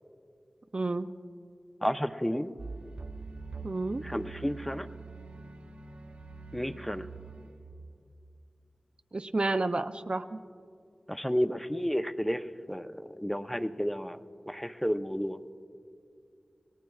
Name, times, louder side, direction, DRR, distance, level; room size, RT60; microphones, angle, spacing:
voice 1, 0.7-1.1 3.6-4.0 9.1-10.4, right 2 dB, 50° right, 8 dB, 0.5 m, -30 dB
voice 2, 1.8-2.5 4.0-4.9 6.5-7.1 11.1-14.2 14.5-15.4, equal, 5° left, 8 dB, 0.6 m, -31 dB
sound 1, 2.6-8.3, right 4 dB, 75° right, 1.5 m, -44 dB
29.0 x 19.5 x 2.4 m, 2.4 s
wide cardioid pair, 45°, 2 cm